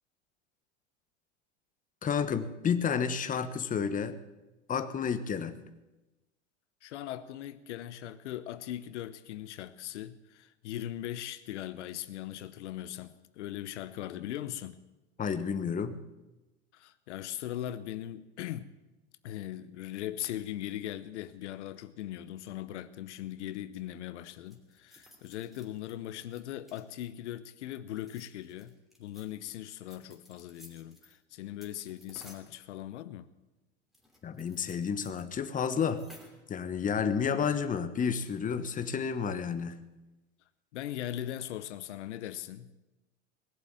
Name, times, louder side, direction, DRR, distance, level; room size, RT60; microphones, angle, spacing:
voice 1, 2.0-4.2 4.7-5.5 15.2-16.0 34.2-36.0 36.5-39.8, left 6 dB, 20° left, 1.2 m, -31 dB
voice 2, 6.8-14.8 16.7-18.7 19.2-33.3 40.7-42.7, left 12 dB, 75° left, 0.9 m, -40 dB
sound 1, 24.2-27.1 27.9-29.3 29.9-31.1 31.6-32.5 33.9-35.2 35.5-35.6 35.8-36.5 37.4-37.7, left 1 dB, ahead, 3.1 m, -57 dB
20.0 x 7.5 x 8.8 m
hypercardioid pair, 100°, 35 cm